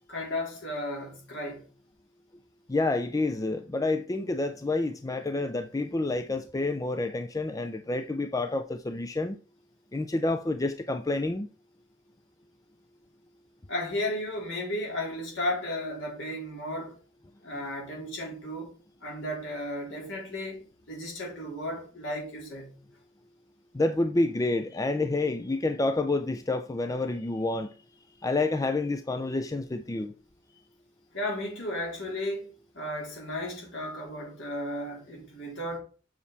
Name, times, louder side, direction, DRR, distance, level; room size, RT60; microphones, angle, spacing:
voice 1, 0.1-1.7 13.7-17.0 17.4-18.8 19.0-22.8 31.1-35.8, left 1 dB, 75° left, 3.9 m, -34 dB
voice 2, 2.7-9.4 9.9-11.5 23.7-27.7 28.2-30.1, left 2 dB, 15° left, 0.4 m, -28 dB
7.3 x 5.9 x 4.1 m
head